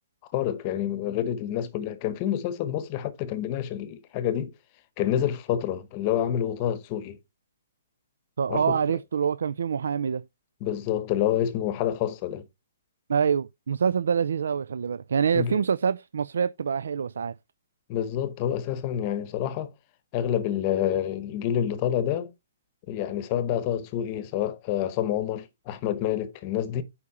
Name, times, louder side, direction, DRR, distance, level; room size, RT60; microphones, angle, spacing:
voice 1, 0.3-4.5 5.0-7.2 8.5-8.8 10.6-12.4 15.3-15.6 17.9-19.7 20.1-22.3 22.9-26.8, left 10 dB, 25° left, 0.9 m, -28 dB
voice 2, 8.4-10.2 13.1-17.3, right 7 dB, 80° right, 0.4 m, -26 dB
8.5 x 5.0 x 4.2 m
hypercardioid pair, 170°, 0 cm